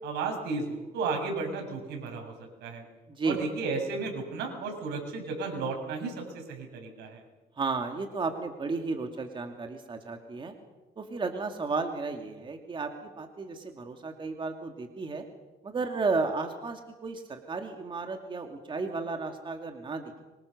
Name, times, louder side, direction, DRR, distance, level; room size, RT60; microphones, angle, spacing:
voice 1, 0.0-2.3 2.6-2.8 3.2-7.2, right 4 dB, 80° right, 3 dB, 7.5 m, -33 dB
voice 2, 7.6-10.5 11.0-15.2 15.6-20.2, right 4 dB, 30° right, 4 dB, 2.7 m, -33 dB
25.5 x 25.0 x 6.8 m, 1.1 s
cardioid pair, 110°, 17 cm